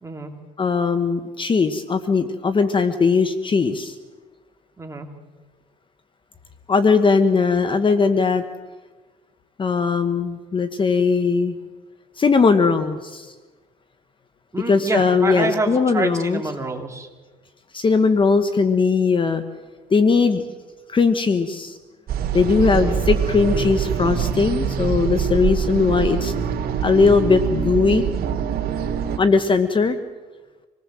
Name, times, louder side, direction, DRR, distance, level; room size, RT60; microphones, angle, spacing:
voice 1, 0.0-0.4 4.8-5.1 14.5-17.1 22.7-23.0, right 3 dB, 15° right, 3 dB, 3.2 m, -27 dB
voice 2, 0.6-3.9 6.7-8.4 9.6-11.6 12.2-13.3 14.6-16.5 17.7-19.4 19.9-20.4 20.9-21.8 22.3-26.3 26.8-28.0 29.2-30.0, left 4 dB, 30° left, 10 dB, 1.3 m, -19 dB
sound 1, 22.1-29.2, right 7 dB, 60° right, 2.9 m, -24 dB
26.5 x 19.0 x 7.6 m, 1.3 s
cardioid pair, 110°, 17 cm